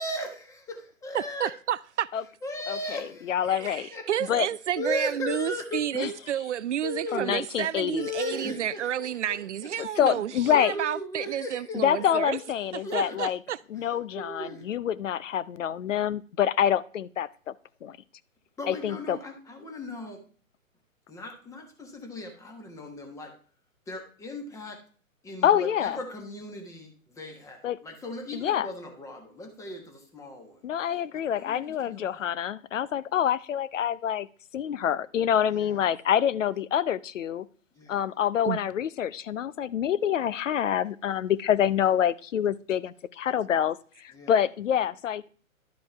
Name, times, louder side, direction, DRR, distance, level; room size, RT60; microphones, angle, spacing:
voice 1, 0.0-1.5 2.4-4.3 4.8-6.1 6.8-7.5 8.0-9.4 10.5-12.5 12.8-13.2 14.1-14.6 18.6-20.2 21.1-23.3 23.9-24.8 25.2-30.6 31.1-32.3 35.5-35.8 37.8-38.0 44.1-44.3, left 1 dB, 5° left, 1.3 m, -37 dB
voice 2, 1.1-2.1 3.5-12.4 12.7-13.6 38.4-38.6, right 11 dB, 60° right, 0.5 m, -31 dB
voice 3, 2.7-3.9 4.3-4.5 5.9-6.1 7.1-8.1 9.8-10.7 11.7-13.4 13.7-17.3 17.8-18.0 18.7-19.2 25.4-26.0 27.6-27.8 28.3-28.7 30.6-34.3 34.5-37.4 37.9-45.3, left 9 dB, 65° left, 0.7 m, -26 dB
11.5 x 5.2 x 4.5 m
hypercardioid pair, 140°, 42 cm